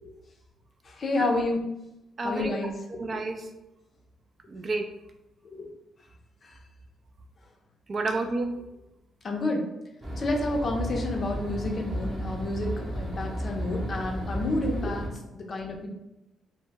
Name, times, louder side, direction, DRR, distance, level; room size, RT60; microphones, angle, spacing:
voice 1, 0.8-1.7 2.2-2.7 5.4-5.7 6.4-6.5 9.2-9.7 10.2-15.9, left 2 dB, 45° left, 1 dB, 0.5 m, -30 dB
voice 2, 2.2-2.6 2.9-3.5 4.5-4.9 7.9-8.6, right 2 dB, 40° right, 5 dB, 0.3 m, -30 dB
sound 1, 10.0-15.1, equal, 20° right, 0.7 m, -33 dB
2.0 x 2.0 x 3.3 m, 0.92 s
cardioid pair, 90°, 0 cm